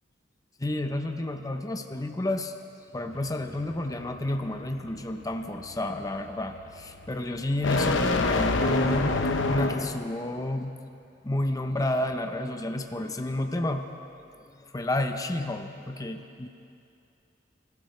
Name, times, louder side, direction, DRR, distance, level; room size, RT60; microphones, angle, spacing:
voice 1, 0.6-2.5 2.9-10.7 11.2-13.8 14.5-16.5, left 1 dB, 20° left, 5 dB, 0.7 m, -30 dB
sound 1, 3.1-10.1, left 2 dB, 75° left, 0.9 m, -28 dB
26.5 x 14.5 x 3.3 m, 2.5 s
head